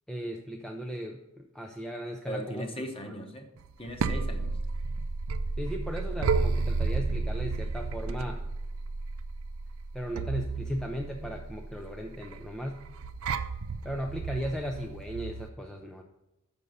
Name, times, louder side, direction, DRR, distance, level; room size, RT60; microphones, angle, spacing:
voice 1, 0.1-3.2 5.6-8.4 9.9-12.8 13.8-16.0, equal, 5° left, 1 dB, 0.4 m, -36 dB
voice 2, 2.3-3.5 3.8-4.5, equal, 25° left, 4 dB, 1.0 m, -38 dB
sound 1, 3.6-15.5, right 4 dB, 80° right, 0.4 m, -32 dB
6.7 x 5.4 x 6.5 m, 0.96 s
head